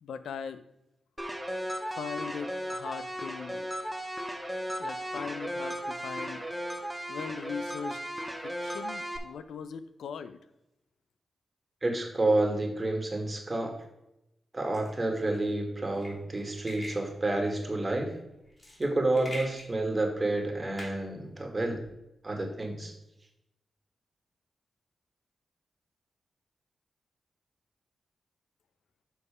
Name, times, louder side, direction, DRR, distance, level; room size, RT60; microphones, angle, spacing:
voice 1, 0.0-0.6 1.9-3.7 4.8-6.4 7.1-8.0 8.4-10.4, left 6 dB, 90° left, 12 dB, 0.4 m, -39 dB
sound 1, 1.2-9.2, equal, 5° right, 1.0 m, -36 dB
voice 2, 11.8-13.8 14.5-18.1 18.8-21.8 22.2-22.9, right 2 dB, 30° right, 2 dB, 1.7 m, -29 dB
sound 2, 14.7-21.9, equal, 30° left, 2.9 m, -46 dB
6.7 x 4.6 x 4.9 m, 0.86 s
cardioid pair, 60°, 0 cm